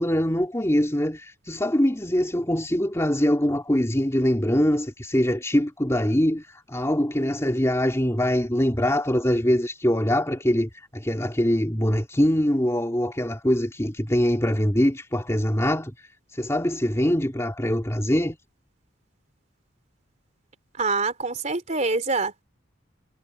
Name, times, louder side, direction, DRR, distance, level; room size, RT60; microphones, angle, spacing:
voice 1, 0.0-18.4, equal, 15° left, 2.9 m, -23 dB
voice 2, 20.8-22.4, right 3 dB, 35° right, 3.5 m, -25 dB
head